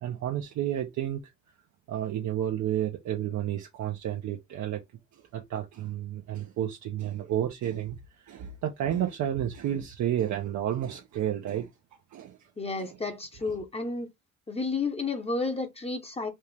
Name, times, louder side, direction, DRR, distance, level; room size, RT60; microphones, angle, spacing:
voice 1, 0.0-1.2 1.9-4.8 5.1-11.7 12.1-12.5 12.8-12.9 13.4-13.6, right 11 dB, 70° right, 0.7 m, -31 dB
voice 2, 12.6-14.1 14.5-16.3, left 3 dB, 20° left, 0.9 m, -31 dB
4.3 x 2.4 x 3.3 m
cardioid pair, 90°, 30 cm